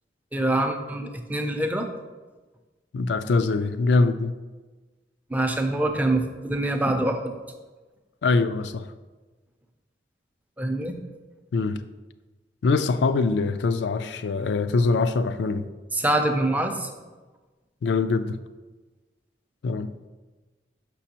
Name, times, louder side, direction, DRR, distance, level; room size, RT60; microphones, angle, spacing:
voice 1, 0.3-1.9 5.3-7.3 10.6-10.9 15.9-16.9, right 1 dB, 10° right, 4 dB, 0.4 m, -25 dB
voice 2, 2.9-4.3 8.2-8.9 11.5-11.8 12.6-15.7 17.8-18.4 19.6-19.9, left 3 dB, 80° left, 12 dB, 0.4 m, -23 dB
6.0 x 6.0 x 2.9 m, 1.3 s
head